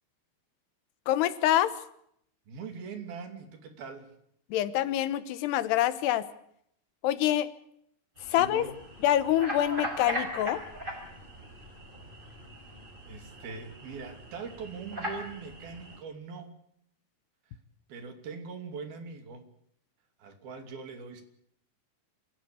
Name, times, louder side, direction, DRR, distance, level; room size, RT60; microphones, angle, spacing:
voice 1, 1.1-1.7 4.5-6.3 7.0-7.5 8.3-8.7 9.0-10.6, left 12 dB, 85° left, 14 dB, 3.2 m, -26 dB
voice 2, 2.5-4.1 8.3-8.7 13.0-16.6 17.9-19.5 20.2-21.2, right 5 dB, 65° right, 7 dB, 4.5 m, -42 dB
sound 1, 8.2-16.0, equal, 10° right, 5.5 m, -40 dB
26.5 x 16.0 x 8.4 m, 0.71 s
omnidirectional pair, 4.6 m